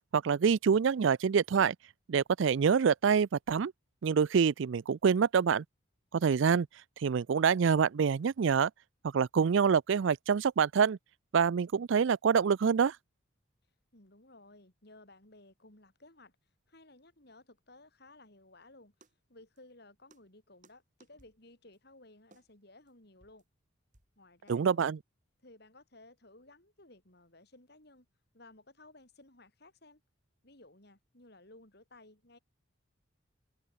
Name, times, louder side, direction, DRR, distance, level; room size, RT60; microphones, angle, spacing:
voice 1, 0.1-1.7 2.1-3.7 4.0-5.6 6.1-6.7 7.0-8.7 9.1-11.0 11.3-13.0 24.5-25.0, right 6 dB, 65° right, 0.4 m, -26 dB
voice 2, 13.9-16.3 16.7-18.9 19.3-23.4 24.2-24.9 25.4-28.1 28.3-30.0 30.4-32.4, left 2 dB, 50° left, 3.9 m, -57 dB
sound 1, 19.0-19.1 19.6-19.7 20.1-20.2 20.6-20.7 21.0-21.4 21.7-21.8 22.3-22.5 22.9-23.0 23.2-23.4 23.9-24.1 24.5-24.7, right 2 dB, 40° right, 4.8 m, -62 dB
head